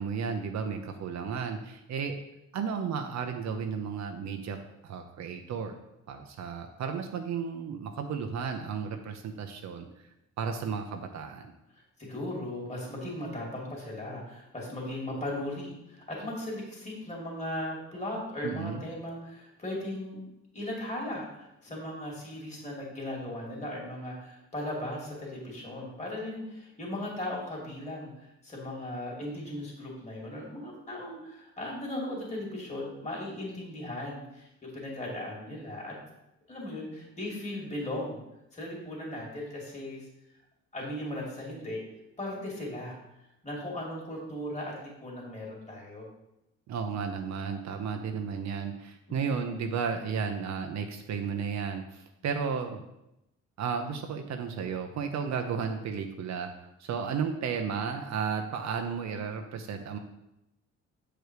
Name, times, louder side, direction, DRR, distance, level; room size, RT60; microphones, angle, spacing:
voice 1, 0.0-2.2 2.5-4.6 4.8-5.7 6.1-10.1 10.4-11.5 18.4-18.8 46.7-52.8 53.6-60.0, right 6 dB, 65° right, 5 dB, 0.8 m, -33 dB
voice 2, 12.0-20.2 20.5-35.9 36.5-38.2 38.5-40.1 40.7-41.8 42.2-43.0 43.4-46.1, left 1 dB, 25° left, -3 dB, 2.8 m, -37 dB
7.8 x 5.0 x 4.7 m, 0.88 s
cardioid pair, 90°, 30 cm